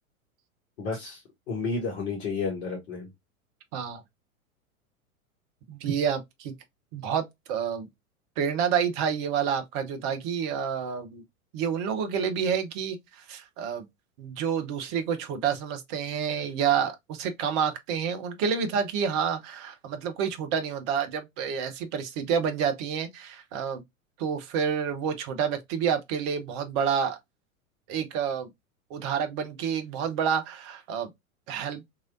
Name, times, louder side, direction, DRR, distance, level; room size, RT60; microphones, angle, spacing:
voice 1, 0.8-1.2 1.5-3.1, left 4 dB, 50° left, 1.2 m, -31 dB
voice 2, 5.7-6.5 6.9-7.9 8.4-11.2 11.5-13.9 14.2-23.8 24.2-27.2 27.9-28.5 28.9-31.1 31.5-31.8, right 7 dB, 20° right, 0.4 m, -29 dB
2.9 x 2.8 x 2.4 m
figure-of-eight pair, 90°, 42 cm